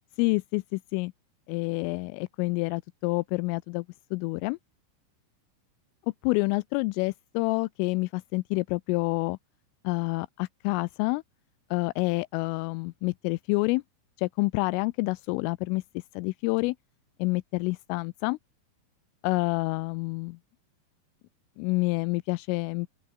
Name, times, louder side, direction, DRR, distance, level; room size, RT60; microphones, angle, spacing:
voice 1, 0.2-1.1 1.5-3.9 4.1-4.6 6.2-9.4 9.8-11.2 11.7-13.8 14.2-16.8 17.2-18.4 19.2-20.4 21.6-22.9, left 25 dB, 85° left, 3.1 m, -28 dB
open air
omnidirectional pair, 5.8 m